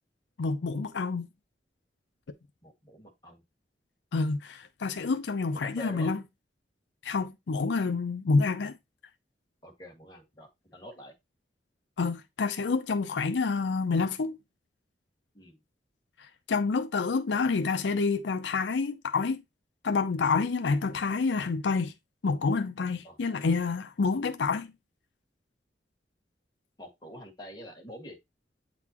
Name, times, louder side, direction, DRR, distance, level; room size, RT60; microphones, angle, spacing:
voice 1, 0.4-1.3 4.1-6.2 7.0-8.7 12.0-14.4 16.5-19.4 19.8-21.9 22.2-24.7, left 4 dB, 85° left, 0.5 m, -28 dB
voice 2, 2.6-3.4 5.5-6.1 9.6-11.1 15.3-15.6 23.0-23.2 26.8-28.2, equal, 25° left, 1.8 m, -46 dB
8.3 x 4.0 x 2.9 m
head